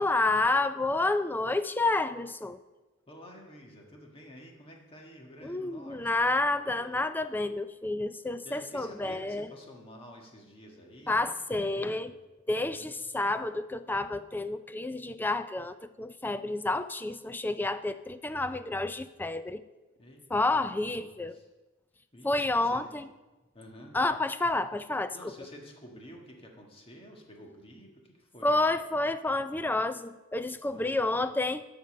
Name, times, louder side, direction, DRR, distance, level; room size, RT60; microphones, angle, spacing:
voice 1, 0.0-2.6 5.4-9.5 11.1-12.1 12.5-19.6 20.3-21.4 22.2-23.1 23.9-25.1 28.4-31.7, left 2 dB, 10° left, 12 dB, 0.3 m, -29 dB
voice 2, 3.1-7.0 8.4-11.2 11.6-12.1 12.6-12.9 20.0-20.2 20.6-21.5 22.1-23.0 23.5-23.9 25.1-28.6 30.7-31.3, equal, 25° left, 1 dB, 1.6 m, -50 dB
12.5 x 5.2 x 6.4 m, 1.1 s
head